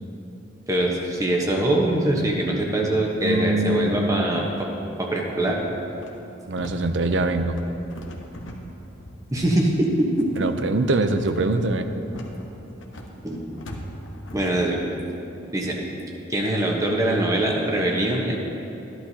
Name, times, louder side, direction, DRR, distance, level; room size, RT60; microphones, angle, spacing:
voice 1, 0.7-4.7 5.0-5.6 9.3-10.5 13.2-13.4 14.3-14.8 15.5-15.8 16.3-18.4, right 1 dB, 15° right, -1 dB, 1.1 m, -23 dB
voice 2, 2.5-4.5 6.5-7.6 10.4-11.9, right 2 dB, 65° right, 8 dB, 0.6 m, -24 dB
sound 1, 5.4-14.6, equal, 80° left, 1.1 m, -40 dB
14.0 x 11.0 x 2.9 m, 2.9 s
head